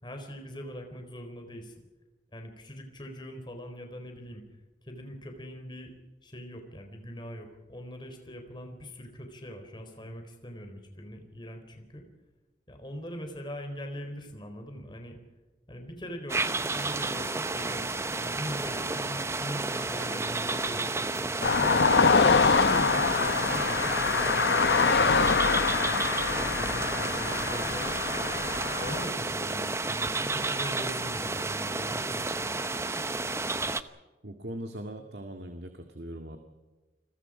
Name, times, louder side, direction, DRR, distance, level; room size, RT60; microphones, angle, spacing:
voice 1, 0.0-1.7 2.3-4.4 4.8-5.9 6.2-12.0 12.7-15.2 15.7-25.7 26.4-27.9 28.8-32.3, equal, 25° left, 4 dB, 4.0 m, -42 dB
sound 1, 16.3-33.8, right 3 dB, 15° right, 0.8 m, -31 dB
sound 2, 21.4-29.1, left 4 dB, 80° left, 0.9 m, -25 dB
voice 2, 34.2-36.4, right 1 dB, 70° right, 5 dB, 2.0 m, -40 dB
29.5 x 22.0 x 5.0 m, 1.2 s
head